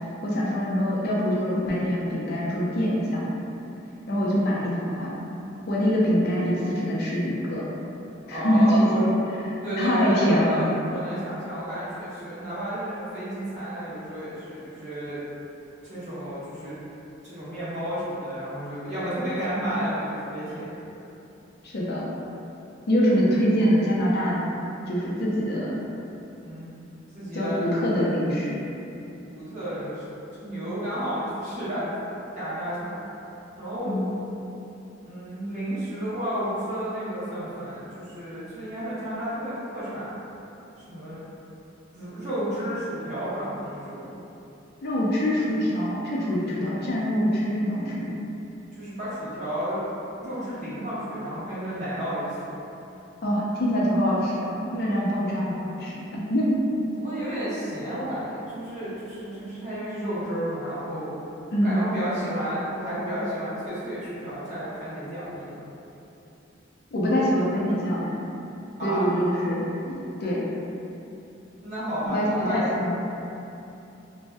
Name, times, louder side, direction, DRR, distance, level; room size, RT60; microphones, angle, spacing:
voice 1, 0.2-3.4 4.1-5.2 5.7-7.6 8.3-9.2 9.8-10.7 21.6-22.1 22.9-24.4 24.9-25.8 27.3-28.6 33.8-34.2 44.8-48.1 53.2-56.6 61.5-61.9 66.9-68.1 68.8-69.7 70.2-70.5 72.1-72.9, equal, 55° left, -5 dB, 0.5 m, -24 dB
voice 2, 8.3-9.0 9.6-15.2 15.8-16.8 17.2-20.7 26.4-26.7 27.1-27.6 29.3-30.0 30.4-32.0 32.3-33.1 33.6-34.1 35.0-40.2 40.9-41.2 41.9-44.2 46.4-46.7 48.7-49.8 50.2-52.4 56.9-61.1 61.6-65.6 68.8-69.1 71.6-72.7, equal, 40° right, -12 dB, 1.1 m, -32 dB
2.6 x 2.1 x 3.3 m, 2.9 s
head